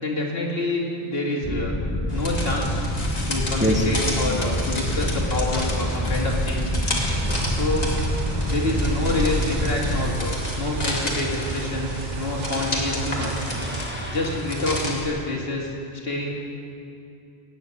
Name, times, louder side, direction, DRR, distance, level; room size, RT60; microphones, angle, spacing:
voice 1, 0.0-1.8 2.1-2.8 3.3-6.7 7.5-7.9 8.5-13.4 14.1-16.3, left 2 dB, 70° left, -2 dB, 2.3 m, -27 dB
sound 1, 1.4-10.1, equal, 10° left, 1.2 m, -27 dB
sound 2, 2.1-15.1, left 1 dB, 40° left, 2.1 m, -31 dB
voice 2, 3.6-3.9 7.3-7.5 12.6-12.7 13.0-14.2, equal, 10° right, 1 dB, 1.2 m, -28 dB
sound 3, 7.1-13.8, right 6 dB, 50° right, 0.7 m, -33 dB
18.0 x 7.4 x 8.4 m, 2.5 s
omnidirectional pair, 1.1 m